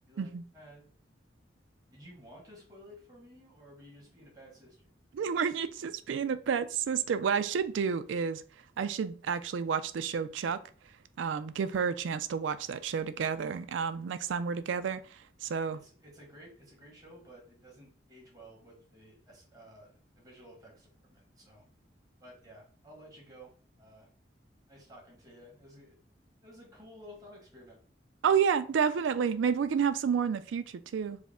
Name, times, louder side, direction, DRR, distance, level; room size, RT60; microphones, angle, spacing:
voice 1, 0.1-0.9 1.9-4.9 15.7-19.9 20.2-21.6 22.2-24.1 24.7-26.0 26.4-27.8, equal, 20° right, 1.6 m, -54 dB
voice 2, 5.1-8.4 8.8-10.6 11.2-15.8 28.2-31.2, right 7 dB, 85° right, 0.3 m, -30 dB
4.7 x 2.1 x 3.5 m
head